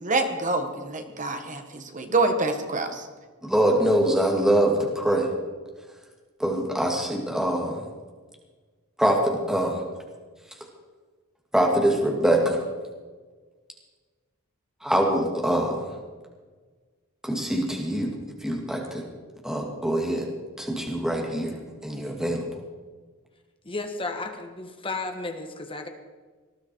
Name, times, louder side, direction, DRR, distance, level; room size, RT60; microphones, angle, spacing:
voice 1, 0.0-3.1, right 2 dB, 35° right, 6 dB, 1.6 m, -26 dB
voice 2, 3.4-5.3 6.4-7.8 9.0-9.8 11.5-12.6 14.8-15.9 17.2-18.1 18.4-19.0 19.4-20.3 20.6-21.6 21.8-22.5, right 1 dB, 5° right, 0 dB, 2.2 m, -24 dB
voice 3, 23.6-25.9, left 3 dB, 25° left, 5 dB, 1.6 m, -33 dB
19.0 x 12.5 x 4.6 m, 1.4 s
head